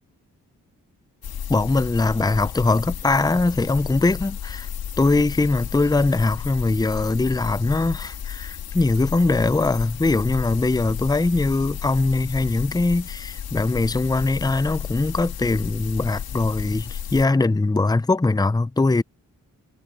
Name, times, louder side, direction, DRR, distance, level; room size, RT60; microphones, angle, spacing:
sound 1, 1.2-17.3, left 9 dB, 85° left, 2.9 m, -33 dB
voice 1, 1.5-4.7 5.0-19.0, left 3 dB, 10° left, 0.7 m, -21 dB
supercardioid pair, 45°, 35 cm